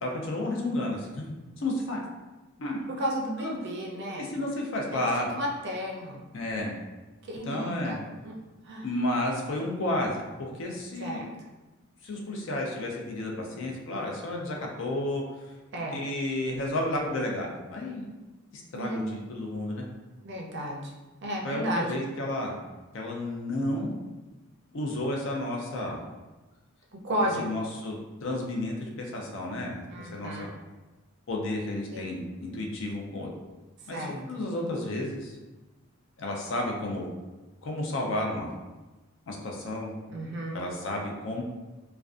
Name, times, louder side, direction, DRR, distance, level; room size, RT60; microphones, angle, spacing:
voice 1, 0.0-2.0 2.6-2.8 3.4-3.5 4.2-5.3 6.3-6.7 7.4-8.0 8.8-11.2 12.0-15.5 15.9-18.1 18.5-19.8 21.4-22.6 22.9-23.9 24.7-26.0 27.4-30.5 31.3-33.3 33.9-35.4 36.2-37.1 37.6-38.5 39.3-39.9 40.5-41.4, left 1 dB, 60° left, -1 dB, 0.4 m, -32 dB
voice 2, 3.0-4.3 4.9-6.2 7.2-8.0 8.2-8.3 8.7-8.9 11.0-11.3 15.7-16.0 18.7-19.1 20.2-20.9 21.2-21.9 27.0-27.6 29.9-30.5 31.9-32.0 33.9-34.2 40.1-40.6, equal, 55° right, -1 dB, 0.4 m, -33 dB
2.4 x 2.2 x 2.4 m, 1.1 s
head